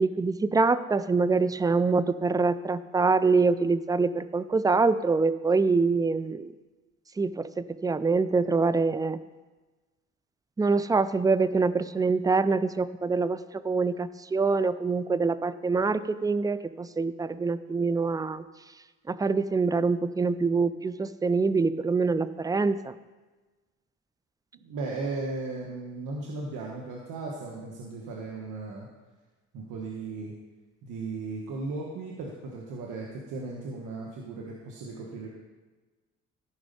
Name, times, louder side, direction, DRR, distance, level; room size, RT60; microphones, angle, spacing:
voice 1, 0.0-6.5 7.2-9.2 10.6-18.4 19.1-22.9, right 4 dB, 10° right, 14 dB, 0.4 m, -25 dB
voice 2, 24.6-28.9 29.5-30.3 30.8-35.3, right 3 dB, 85° right, -2 dB, 1.4 m, -36 dB
14.5 x 5.1 x 5.3 m, 1.2 s
cardioid pair, 90°, 30 cm